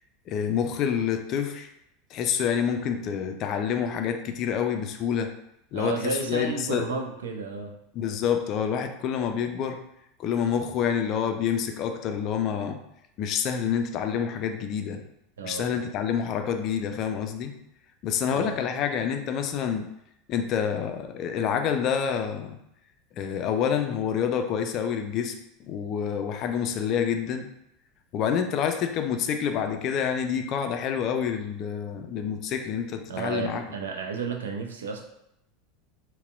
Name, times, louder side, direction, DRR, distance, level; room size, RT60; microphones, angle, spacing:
voice 1, 0.3-1.7 2.1-5.3 5.7-6.9 7.9-9.8 10.2-12.8 13.2-15.0 15.4-17.5 18.0-19.9 20.3-22.6 23.2-25.3 25.6-27.5 28.1-33.6, left 8 dB, 40° left, 6 dB, 0.3 m, -27 dB
voice 2, 5.7-7.7 15.4-15.7 18.3-18.5 33.1-35.0, right 5 dB, 70° right, 3 dB, 0.4 m, -32 dB
4.0 x 2.1 x 2.5 m, 0.81 s
figure-of-eight pair, 80°, 0 cm